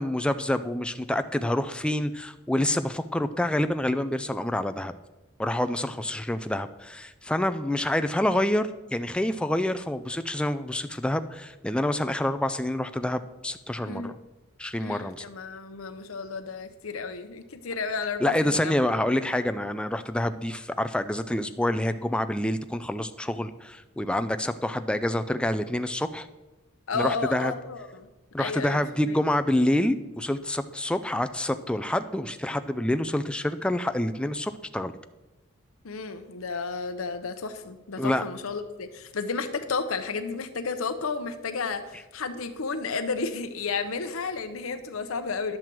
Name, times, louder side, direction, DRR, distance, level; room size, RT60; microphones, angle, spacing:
voice 1, 0.0-4.9 5.4-14.1 14.6-15.2 18.2-26.3 26.9-27.5 28.3-34.9 38.0-38.2, left 1 dB, 5° left, 9 dB, 0.3 m, -27 dB
voice 2, 14.8-18.8 26.9-28.1 28.4-29.2 35.8-45.6, left 4 dB, 90° left, 8 dB, 0.8 m, -32 dB
10.5 x 7.4 x 4.6 m, 1.1 s
head